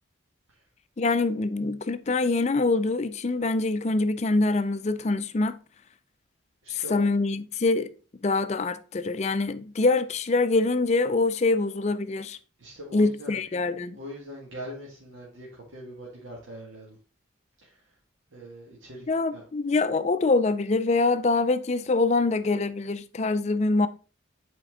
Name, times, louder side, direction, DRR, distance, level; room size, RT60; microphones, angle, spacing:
voice 1, 1.0-5.6 6.7-7.9 8.2-12.4 12.9-14.0 19.1-23.9, left 3 dB, 35° left, 0.4 m, -24 dB
voice 2, 6.6-7.1 12.6-13.4 13.9-17.0 17.6-17.8 18.3-19.4, left 1 dB, 75° right, 1.8 m, -42 dB
7.7 x 4.3 x 3.7 m
head